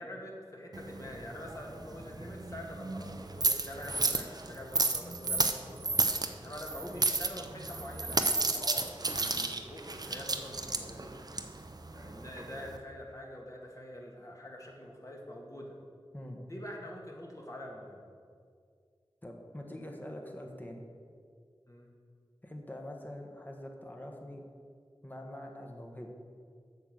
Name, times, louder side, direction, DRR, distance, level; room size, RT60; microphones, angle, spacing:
voice 1, 0.0-6.0 6.4-8.3 8.5-11.2 11.9-15.8 16.4-18.0 21.7-21.9, left 1 dB, 35° left, -1 dB, 1.7 m, -45 dB
sound 1, 0.7-12.8, right 3 dB, 45° right, 0.6 m, -33 dB
voice 2, 19.2-20.8 22.4-24.4 25.0-26.1, left 1 dB, 20° left, 2 dB, 1.3 m, -44 dB
7.8 x 6.8 x 6.4 m, 2.2 s
wide cardioid pair, 65°, 10 cm